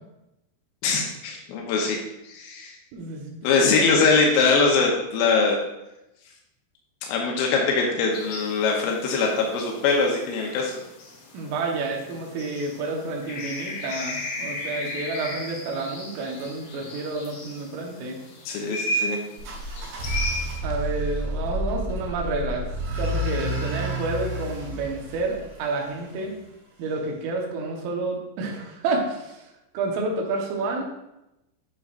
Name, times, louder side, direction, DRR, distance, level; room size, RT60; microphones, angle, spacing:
voice 1, 0.8-2.0 2.3-2.7 3.4-5.6 7.1-10.8 18.5-19.2, left 4 dB, 90° left, 0 dB, 3.5 m, -22 dB
voice 2, 2.9-3.3 3.6-3.9 11.3-18.2 20.6-22.6 23.0-26.3 26.8-29.5 29.7-30.8, right 3 dB, 85° right, 0 dB, 3.8 m, -29 dB
sound 1, 8.1-20.6, left 1 dB, 70° left, 3.7 m, -35 dB
sound 2, 19.4-26.3, right 1 dB, 55° right, 3.9 m, -30 dB
9.9 x 6.6 x 2.5 m, 0.90 s
omnidirectional pair, 5.6 m